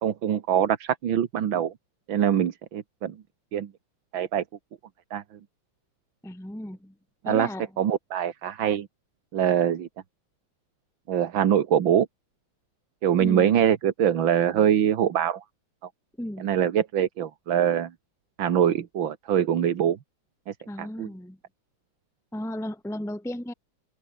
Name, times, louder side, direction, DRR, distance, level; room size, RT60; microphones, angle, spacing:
voice 1, 0.0-1.7 2.1-3.2 3.5-3.7 4.1-4.4 5.1-5.2 7.2-7.5 7.8-8.9 9.3-9.9 11.1-12.1 13.0-15.4 16.4-17.9 18.4-20.0 20.5-21.1, right 9 dB, 80° right, 2.1 m, -23 dB
voice 2, 6.2-6.9 7.2-7.7 13.2-13.5 16.2-16.6 20.7-21.4 22.3-23.5, left 1 dB, ahead, 1.2 m, -35 dB
omnidirectional pair, 2.1 m